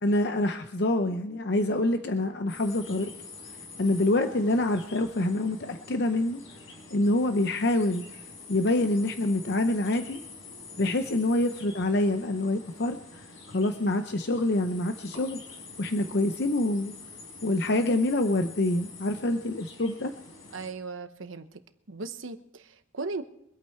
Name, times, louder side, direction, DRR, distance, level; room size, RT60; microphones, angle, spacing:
voice 1, 0.0-3.1 3.8-6.4 6.9-8.1 8.5-10.2 10.8-15.4 15.8-16.9 17.4-20.1, left 1 dB, 55° left, 8 dB, 0.7 m, -26 dB
sound 1, 2.5-20.7, left 4 dB, 85° left, 4.5 m, -46 dB
voice 2, 20.5-21.5 21.9-23.2, right 3 dB, 90° right, 9 dB, 1.1 m, -37 dB
24.0 x 8.7 x 4.5 m, 0.80 s
head